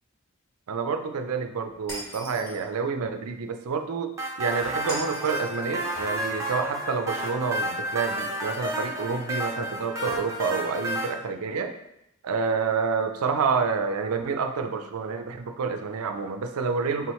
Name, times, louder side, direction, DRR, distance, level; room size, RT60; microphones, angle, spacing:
voice 1, 0.7-11.8 12.2-17.1, right 5 dB, 90° right, 7 dB, 0.5 m, -28 dB
Shatter, 1.9-2.6 4.9-5.6, equal, 10° left, 1.0 m, -39 dB
sound 1, 4.2-11.1, equal, 15° right, 0.6 m, -31 dB
4.6 x 3.6 x 3.1 m, 0.83 s
head